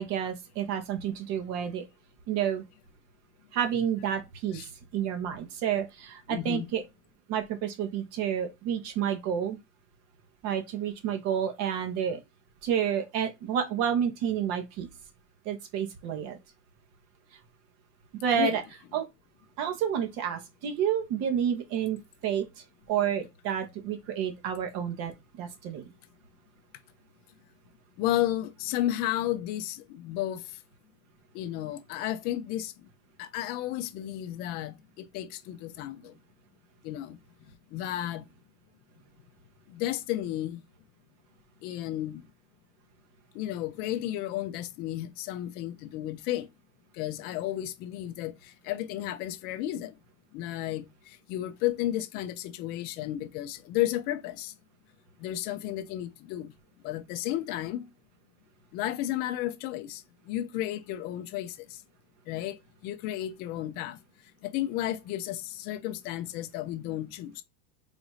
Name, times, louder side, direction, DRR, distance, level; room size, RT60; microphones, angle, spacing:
voice 1, 0.0-1.8 2.3-2.6 3.5-4.6 4.9-6.8 7.3-9.6 10.4-12.2 12.6-14.9 15.4-16.4 18.2-18.6 18.9-19.0 19.6-22.5 22.9-25.1 25.4-25.9, right 9 dB, 45° right, 1.1 m, -29 dB
voice 2, 6.3-6.7 18.3-18.6 28.0-30.4 31.3-32.7 33.2-36.1 36.8-37.2 37.7-38.3 39.7-40.6 41.6-42.2 43.3-46.5 46.9-49.9 50.3-54.5 55.2-56.5 56.8-57.9 58.7-61.8 62.3-62.6 62.8-64.0 64.4-67.4, left 13 dB, 30° left, 0.4 m, -33 dB
4.0 x 2.5 x 4.7 m
supercardioid pair, 155°, 34 cm